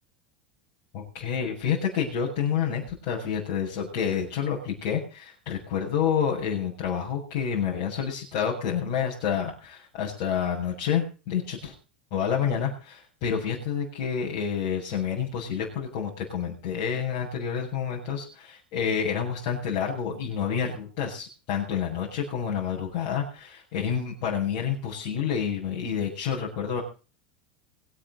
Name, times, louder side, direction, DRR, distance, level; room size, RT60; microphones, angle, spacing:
voice 1, 0.9-11.7 12.1-26.8, left 7 dB, 60° left, -5 dB, 7.4 m, -29 dB
24.0 x 10.0 x 4.2 m, 0.35 s
hypercardioid pair, 90°, 5 cm